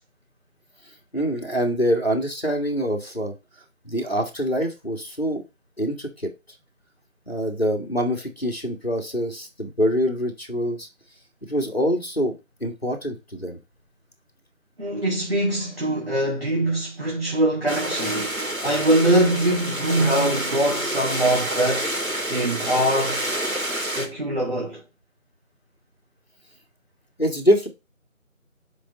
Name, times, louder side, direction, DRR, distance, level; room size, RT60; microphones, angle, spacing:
voice 1, 1.1-3.3 3.8-5.4 5.8-6.3 7.3-10.9 11.5-13.6 27.2-27.7, equal, 45° left, 1.9 m, -25 dB
voice 2, 14.8-18.4 18.6-23.2 23.7-24.8, right 1 dB, 45° right, 2.0 m, -23 dB
sound 1, 17.7-24.1, right 1 dB, 80° right, 2.7 m, -28 dB
5.4 x 5.1 x 5.0 m
figure-of-eight pair, 180°, 41 cm